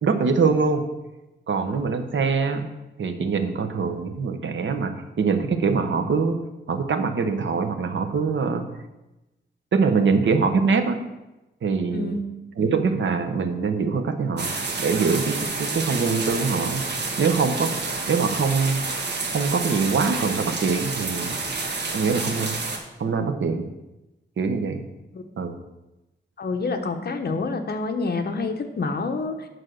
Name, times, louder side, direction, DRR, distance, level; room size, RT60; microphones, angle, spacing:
voice 1, 0.0-0.8 1.5-2.7 3.0-6.4 6.7-8.6 9.7-11.0 11.6-12.2 12.6-14.5 14.8-16.8 17.2-17.8 18.1-18.8 19.3-21.4 21.9-22.6 23.0-23.7 24.4-24.8 25.4-25.5, right 5 dB, 75° right, 7 dB, 1.1 m, -23 dB
voice 2, 11.9-12.2 25.1-25.2 26.4-29.5, left 3 dB, 55° left, 6 dB, 1.0 m, -27 dB
sound 1, 14.4-22.8, right 3 dB, 60° right, 1.6 m, -29 dB
9.8 x 6.3 x 6.6 m, 1.0 s
wide cardioid pair, 180°, 20 cm